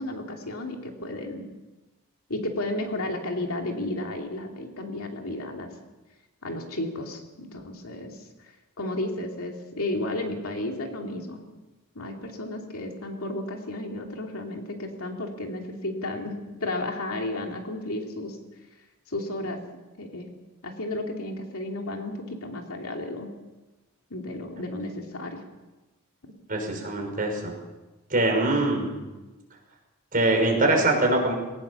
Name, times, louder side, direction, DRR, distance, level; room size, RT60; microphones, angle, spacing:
voice 1, 0.0-1.5 2.3-5.7 6.4-8.2 8.8-11.5 11.9-18.4 19.1-19.6 20.0-20.3 20.6-23.3 24.1-25.4 26.2-26.3, left 1 dB, 65° left, 2 dB, 2.9 m, -33 dB
voice 2, 26.5-27.5 28.1-28.9 30.1-31.3, right 2 dB, 40° right, 1 dB, 5.7 m, -23 dB
21.0 x 19.0 x 7.1 m, 1.1 s
head